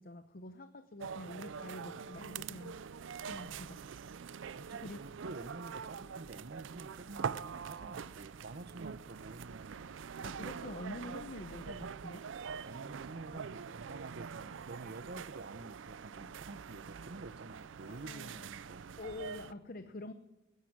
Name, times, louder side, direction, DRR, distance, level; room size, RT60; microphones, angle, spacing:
voice 1, 0.0-2.8 3.2-3.8 4.8-5.0 10.2-12.2 17.9-18.5 19.0-20.1, left 2 dB, 50° left, 10 dB, 0.7 m, -46 dB
sound 1, 1.0-19.5, right 6 dB, 80° right, 0.5 m, -44 dB
voice 2, 4.5-9.9 12.6-18.9, right 2 dB, 55° right, 14 dB, 0.8 m, -49 dB
18.0 x 11.0 x 6.1 m, 1.1 s
head